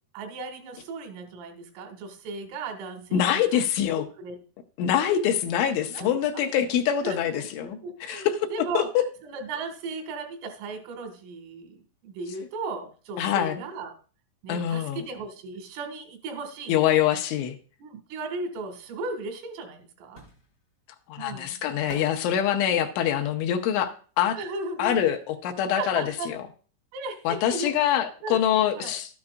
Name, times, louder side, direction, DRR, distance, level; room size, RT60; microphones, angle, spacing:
voice 1, 0.1-4.4 5.9-6.4 7.0-8.9 9.2-13.9 14.4-16.7 17.8-20.2 21.2-21.6 24.3-25.0 25.8-26.3 26.9-27.7 28.2-28.4 28.8-29.0, right 3 dB, 85° right, 5 dB, 4.3 m, -36 dB
voice 2, 3.1-4.0 4.8-9.0 13.2-13.6 14.5-15.1 16.7-17.6 21.1-24.4 24.8-26.4 27.2-29.2, left 10 dB, 80° left, 5 dB, 3.0 m, -25 dB
sound 1, 19.5-25.1 25.4-27.0 27.2-27.3, left 2 dB, 65° left, 0.9 m, -51 dB
12.5 x 9.7 x 2.4 m, 0.39 s
omnidirectional pair, 5.7 m